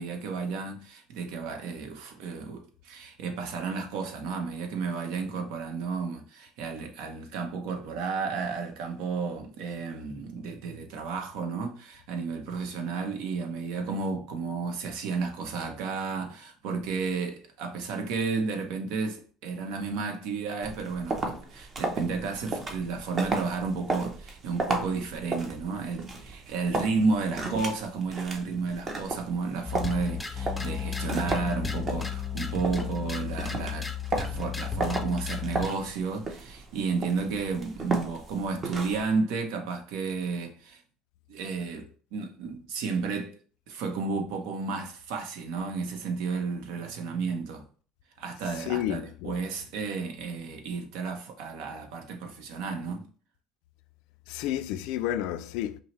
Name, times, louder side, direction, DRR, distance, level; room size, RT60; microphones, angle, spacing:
voice 1, 0.0-40.8 41.3-43.3 43.7-47.6 48.2-53.1, right 4 dB, 75° right, 0.9 m, -32 dB
sound 1, 20.6-39.1, right 3 dB, 35° right, 0.8 m, -35 dB
sound 2, 29.7-35.8, left 6 dB, 10° left, 0.5 m, -33 dB
voice 2, 48.5-49.4 54.3-55.8, left 12 dB, 75° left, 0.3 m, -31 dB
5.4 x 2.1 x 3.1 m
supercardioid pair, 105°, 0 cm